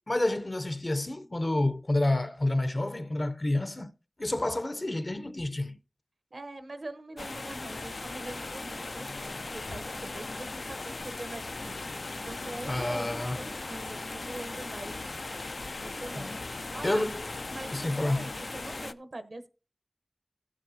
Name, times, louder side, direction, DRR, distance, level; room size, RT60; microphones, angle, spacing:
voice 1, 0.1-3.9 4.2-5.8 12.7-13.5 16.2-16.3 16.8-17.2 17.7-18.3, left 1 dB, 50° left, 0.7 m, -29 dB
voice 2, 6.3-15.5 15.7-17.1 17.5-19.5, right 2 dB, 80° right, 0.9 m, -43 dB
sound 1, 7.2-18.9, left 3 dB, 90° left, 0.4 m, -38 dB
16.5 x 7.3 x 2.7 m
wide cardioid pair, 45°, 0 cm